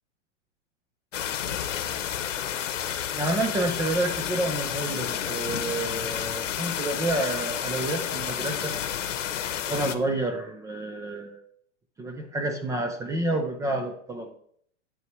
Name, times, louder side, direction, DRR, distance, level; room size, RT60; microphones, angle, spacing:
sound 1, 1.1-10.0, left 9 dB, 85° left, 0.9 m, -30 dB
voice 1, 3.1-8.8 9.7-11.5 12.0-14.4, right 2 dB, 10° right, 5 dB, 0.5 m, -29 dB
9.2 x 8.4 x 3.1 m, 0.64 s
hypercardioid pair, 130°, 36 cm